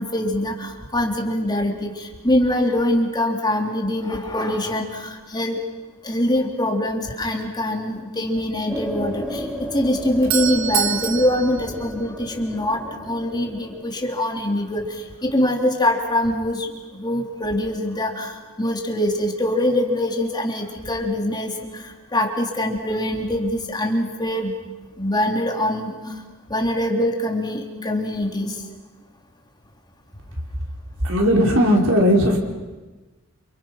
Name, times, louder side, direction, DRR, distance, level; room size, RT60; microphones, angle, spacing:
voice 1, 0.0-5.6 6.0-24.5 25.0-26.1 26.5-28.6, left 1 dB, 20° left, 2 dB, 3.3 m, -23 dB
sound 1, 8.7-13.8, equal, 5° right, 3.5 m, -33 dB
Doorbell, 9.9-12.7, right 9 dB, 65° right, 1.5 m, -27 dB
voice 2, 31.0-32.4, equal, 85° right, 1 dB, 4.9 m, -17 dB
29.0 x 29.0 x 5.9 m, 1.2 s
head